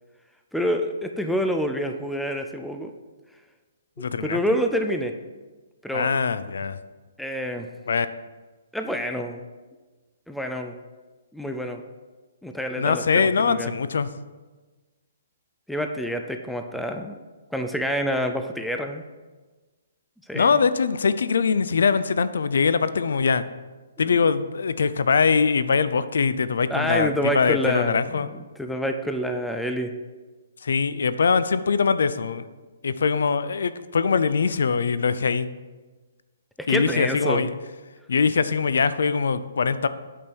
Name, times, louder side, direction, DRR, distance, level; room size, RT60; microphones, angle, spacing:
voice 1, 0.5-2.9 4.2-5.1 5.8-6.1 7.2-7.7 8.7-9.4 10.3-10.8 11.3-11.8 12.4-13.7 15.7-17.2 17.5-19.0 20.3-20.5 24.0-24.2 26.7-28.3 28.6-29.9 36.7-37.5, equal, ahead, 5 dB, 0.3 m, -27 dB
voice 2, 4.0-4.4 5.9-6.8 7.9-8.1 12.8-14.1 20.3-23.4 24.0-28.3 30.6-32.5 32.8-35.5 36.7-37.5 38.1-39.9, left 5 dB, 75° left, 14 dB, 0.4 m, -22 dB
8.5 x 5.3 x 4.5 m, 1.3 s
hypercardioid pair, 175°, 0 cm